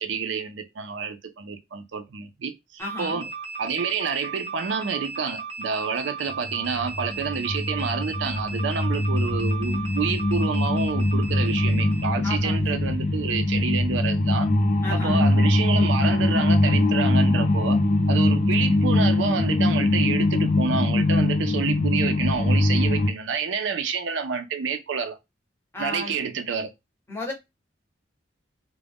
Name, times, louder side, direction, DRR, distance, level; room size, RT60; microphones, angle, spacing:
voice 1, 0.0-3.3 3.6-14.5 14.9-17.8 18.1-25.2 25.8-26.7, right 5 dB, 80° right, 0.5 m, -28 dB
voice 2, 2.8-3.2 12.2-12.8 14.8-15.3 25.7-26.1 27.1-27.3, left 2 dB, 15° left, 0.7 m, -33 dB
sound 1, 2.8-12.1, right 4 dB, 30° right, 0.5 m, -36 dB
sound 2, 6.4-23.1, left 2 dB, 45° left, 0.4 m, -22 dB
2.4 x 2.1 x 3.4 m
head